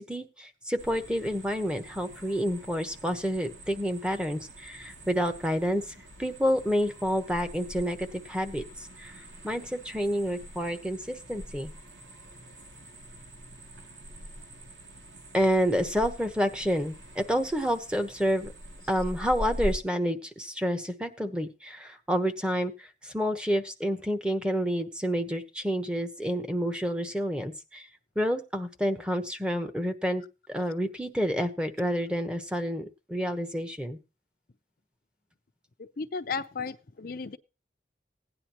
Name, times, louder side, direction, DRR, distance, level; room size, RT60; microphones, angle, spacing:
voice 1, 0.0-5.8 6.2-8.6 9.0-9.1 9.4-11.7 15.3-18.5 18.9-27.9 28.2-30.2 30.5-34.0, equal, 5° right, 8 dB, 1.0 m, -29 dB
sound 1, 0.8-19.8, equal, 90° right, 2.7 m, -44 dB
voice 2, 36.0-37.4, left 4 dB, 55° left, 9 dB, 0.6 m, -34 dB
17.0 x 9.9 x 3.0 m, 0.29 s
head